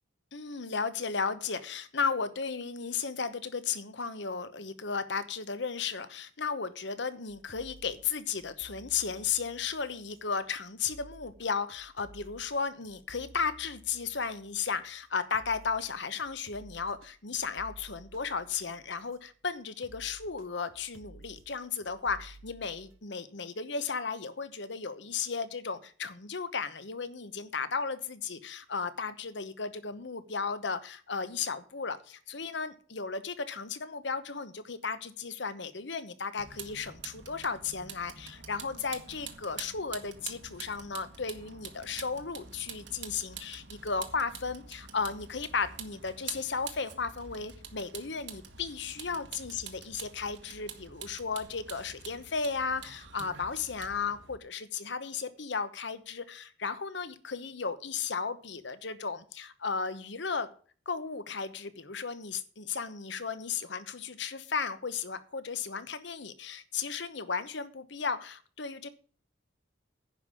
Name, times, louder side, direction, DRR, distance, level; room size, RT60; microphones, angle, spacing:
voice 1, 0.3-60.5 60.9-68.9, left 5 dB, 65° left, 13 dB, 1.0 m, -35 dB
sound 1, 7.3-19.3 19.8-23.0, right 2 dB, 85° right, 1.1 m, -55 dB
Vehicle, 36.4-54.4, right 7 dB, 60° right, 1.4 m, -46 dB
10.5 x 5.5 x 8.2 m, 0.41 s
head